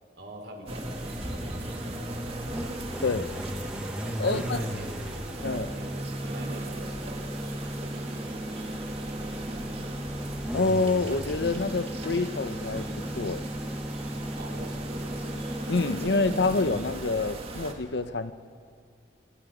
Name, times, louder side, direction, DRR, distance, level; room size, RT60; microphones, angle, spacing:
voice 1, 0.2-2.5 4.2-6.0 6.2-10.1 14.3-15.2, right 1 dB, 60° right, 2 dB, 4.3 m, -44 dB
sound 1, 0.7-17.5, equal, 5° right, 1.1 m, -36 dB
sound 2, 0.7-17.7, right 2 dB, 30° right, 1.9 m, -39 dB
voice 2, 3.0-3.3 4.2-4.6 5.4-5.7 10.5-12.9 13.2-13.4 15.7-18.3, left 3 dB, 65° left, 12 dB, 0.8 m, -27 dB
29.0 x 28.0 x 5.0 m, 2.3 s
head